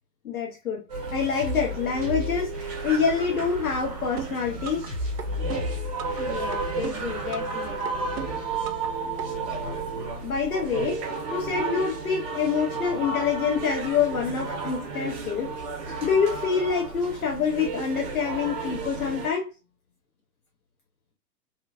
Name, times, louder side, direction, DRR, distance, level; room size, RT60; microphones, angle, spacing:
voice 1, 0.2-0.8 1.1-2.5 2.8-4.8 10.2-11.0 11.3-15.5 16.0-19.5, left 6 dB, 60° left, 0.9 m, -26 dB
sound 1, 0.9-19.3, right 4 dB, 25° right, 0.9 m, -33 dB
sound 2, 1.4-8.4, left 3 dB, 10° left, 0.5 m, -36 dB
sound 3, 4.2-4.9 5.2-6.2 6.5-7.6 7.9-8.9 9.2-9.3, right 8 dB, 80° right, 0.6 m, -36 dB
voice 2, 6.2-8.1 9.0-9.1, left 4 dB, 40° left, 1.3 m, -35 dB
2.9 x 2.5 x 2.5 m
figure-of-eight pair, 115°, 50 cm